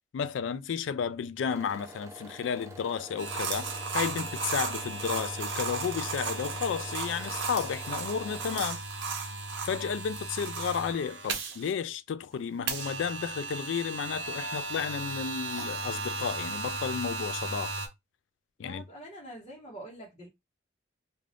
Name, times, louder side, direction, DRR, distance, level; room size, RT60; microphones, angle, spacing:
voice 1, 0.1-8.8 9.7-17.7 18.6-18.8, left 7 dB, 80° left, 0.3 m, -32 dB
sound 1, 1.5-8.6, equal, 15° right, 0.4 m, -47 dB
sound 2, 3.2-11.7 12.7-17.9, right 4 dB, 85° right, 0.7 m, -35 dB
voice 2, 18.6-20.3, right 1 dB, 30° left, 0.9 m, -45 dB
2.5 x 2.4 x 3.3 m
head